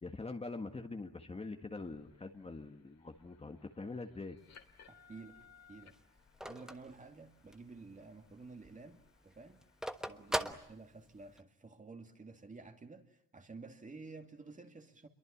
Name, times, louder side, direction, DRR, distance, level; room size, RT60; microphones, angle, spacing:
voice 1, 0.0-4.4 10.4-10.6, left 3 dB, 20° left, 5 dB, 1.6 m, -44 dB
sound 1, 1.8-10.5, left 7 dB, 50° left, 3.3 m, -65 dB
Telephone, 4.4-7.8 8.2-8.3 8.5-11.4, right 1 dB, ahead, 1.3 m, -41 dB
voice 2, 5.1-5.9 6.4-9.6 10.1-15.1, right 3 dB, 25° right, 5 dB, 2.5 m, -52 dB
27.0 x 23.0 x 8.7 m, 0.73 s
cardioid pair, 115°, 33 cm